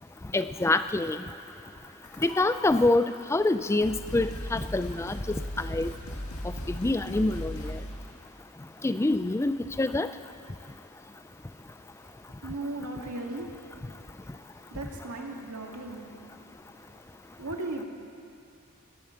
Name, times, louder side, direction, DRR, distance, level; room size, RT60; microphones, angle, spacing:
voice 1, 0.3-1.2 2.2-3.0 3.3-5.2 5.6-5.9 6.7-7.7 8.8-10.1, left 2 dB, 10° left, 11 dB, 0.3 m, -25 dB
sound 1, 2.0-2.7 3.4-3.5 3.8-8.0, equal, 75° left, 1.9 m, -37 dB
voice 2, 12.4-13.5 14.7-16.1 17.4-17.8, right 2 dB, 85° right, 1 dB, 1.9 m, -36 dB
18.0 x 12.5 x 5.7 m, 2.6 s
head